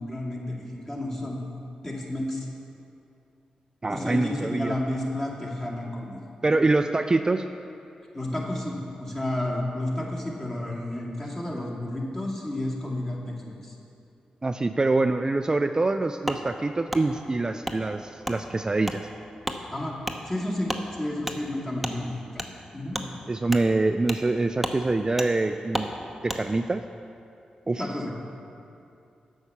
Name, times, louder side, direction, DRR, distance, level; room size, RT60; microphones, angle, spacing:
voice 1, 0.0-1.4 1.8-2.5 3.9-6.2 6.5-6.6 8.1-13.8 19.7-20.0 20.3-22.4 22.7-23.0 27.8-28.1, left 1 dB, 20° left, -3 dB, 2.2 m, -31 dB
voice 2, 3.8-4.7 6.4-7.5 14.4-19.1 23.3-25.9 26.2-26.8 27.7-27.9, right 2 dB, 30° right, 8 dB, 0.3 m, -25 dB
Wood, 16.3-16.4 16.9-17.0 17.6-17.8 18.2-18.4 18.8-19.0 19.4-19.6 20.0-20.2 20.7-20.8 21.3-21.4 21.8-22.0 22.4-22.5 22.9-23.1 23.5-23.6 24.1-24.2 24.6-24.8 25.2-25.3 25.7-25.9 26.3-26.4, equal, ahead, 0.9 m, -31 dB
8.0 x 5.5 x 7.1 m, 2.6 s
supercardioid pair, 50°, 3 cm